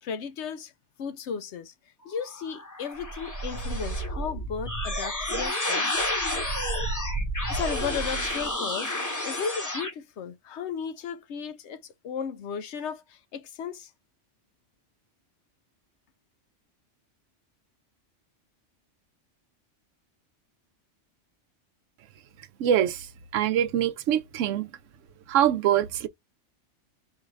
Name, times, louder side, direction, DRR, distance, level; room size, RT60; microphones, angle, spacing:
voice 1, 0.0-0.7 1.0-1.7 2.0-5.9 7.5-8.9 9.2-13.9, left 6 dB, 70° left, 0.9 m, -35 dB
sound 1, 2.2-9.9, equal, 15° left, 0.8 m, -30 dB
voice 2, 22.6-23.1 23.3-24.7 25.3-26.1, right 10 dB, 90° right, 0.9 m, -24 dB
4.6 x 2.5 x 3.1 m
omnidirectional pair, 1.3 m